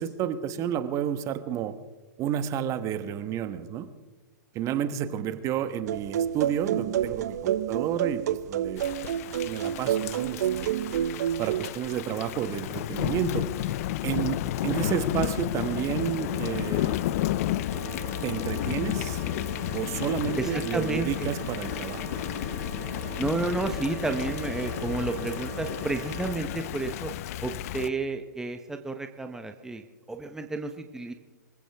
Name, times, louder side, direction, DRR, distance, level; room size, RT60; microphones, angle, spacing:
voice 1, 0.0-1.7 2.2-3.9 4.5-8.8 9.4-10.7 11.4-13.7 14.0-17.0 18.2-19.2 19.7-22.0, right 9 dB, 35° right, 11 dB, 1.3 m, -31 dB
sound 1, 5.9-11.7, right 10 dB, 60° right, 0.9 m, -29 dB
Thunder / Rain, 8.8-27.9, left 14 dB, 55° left, 0.6 m, -32 dB
sound 2, 17.7-26.3, right 10 dB, 85° right, 4.6 m, -42 dB
voice 2, 20.4-21.3 23.2-27.1 27.4-29.8 30.1-31.1, right 3 dB, 5° right, 6 dB, 1.0 m, -31 dB
25.5 x 15.0 x 3.5 m, 1.2 s
hypercardioid pair, 115°, 10 cm